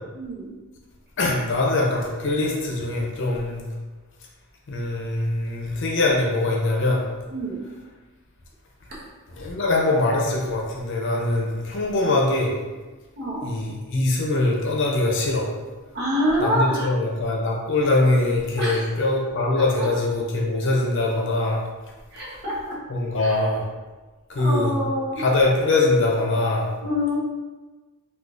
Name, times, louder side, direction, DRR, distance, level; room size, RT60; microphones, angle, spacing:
voice 1, 0.1-0.6 7.3-7.6 8.9-9.0 13.2-13.5 15.9-16.9 18.6-18.9 19.6-19.9 22.1-22.8 23.2-23.4 24.4-25.2 26.8-27.2, equal, 50° right, -5 dB, 0.9 m, -26 dB
voice 2, 1.2-3.6 4.7-7.0 9.3-12.5 13.4-15.5 16.4-21.6 22.9-23.6 24.3-24.7 25.2-26.7, left 2 dB, 60° left, -1 dB, 0.6 m, -22 dB
3.7 x 2.4 x 2.4 m, 1.3 s
head